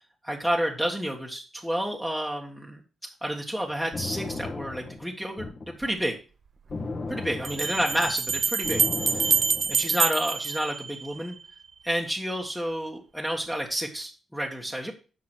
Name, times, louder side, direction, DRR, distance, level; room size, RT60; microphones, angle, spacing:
voice 1, 0.2-2.8 3.2-6.1 7.1-9.4 9.7-11.3 11.8-14.9, equal, ahead, 0 dB, 1.5 m, -30 dB
sound 1, 3.7-5.8 6.7-10.0, left 3 dB, 40° left, 2.0 m, -35 dB
sound 2, 5.8-5.9 7.4-11.4, right 5 dB, 45° right, 0.7 m, -26 dB
9.6 x 6.0 x 6.2 m, 0.36 s
cardioid pair, 105°, 0 cm